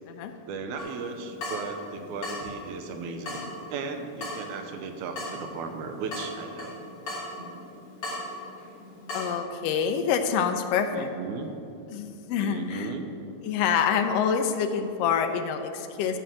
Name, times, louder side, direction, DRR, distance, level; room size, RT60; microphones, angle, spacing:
voice 1, 0.5-6.8 10.9-11.5 12.4-13.1 13.8-13.9, right 4 dB, 85° right, 6 dB, 2.3 m, -36 dB
Water tap faucet / Drip, 0.8-9.4, left 1 dB, 50° left, 3.2 m, -39 dB
voice 2, 9.1-11.1 11.9-12.9 13.4-16.2, left 7 dB, 80° left, 6 dB, 1.4 m, -26 dB
12.5 x 4.6 x 7.6 m, 2.7 s
omnidirectional pair, 3.4 m